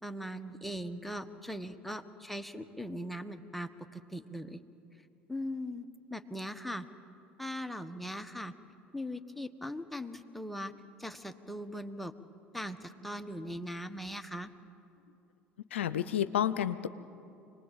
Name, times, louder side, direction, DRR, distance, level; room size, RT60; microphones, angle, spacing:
voice 1, 0.0-4.6 5.3-6.9 7.4-8.5 8.9-10.7 11.0-12.1 12.5-14.5, equal, ahead, 7 dB, 1.5 m, -40 dB
voice 2, 15.7-16.9, left 10 dB, 85° left, 13 dB, 0.6 m, -30 dB
25.5 x 19.5 x 8.9 m, 2.8 s
hypercardioid pair, 70°, 6 cm